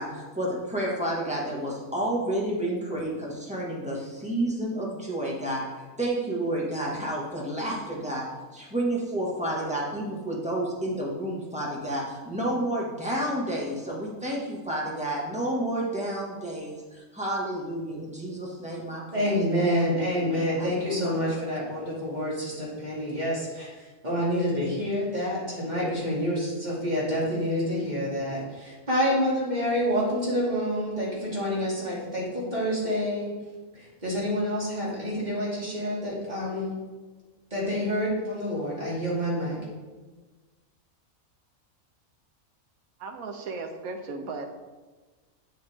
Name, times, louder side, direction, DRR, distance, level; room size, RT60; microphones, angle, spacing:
voice 1, 0.0-5.6 6.0-8.3 8.5-21.1, right 1 dB, 5° right, -4 dB, 1.8 m, -30 dB
voice 2, 19.1-33.3 33.7-36.8 37.5-39.6, equal, 30° right, -6 dB, 2.7 m, -28 dB
voice 3, 43.0-44.5, right 3 dB, 75° right, 5 dB, 1.4 m, -36 dB
7.8 x 7.8 x 3.6 m, 1.3 s
omnidirectional pair, 1.5 m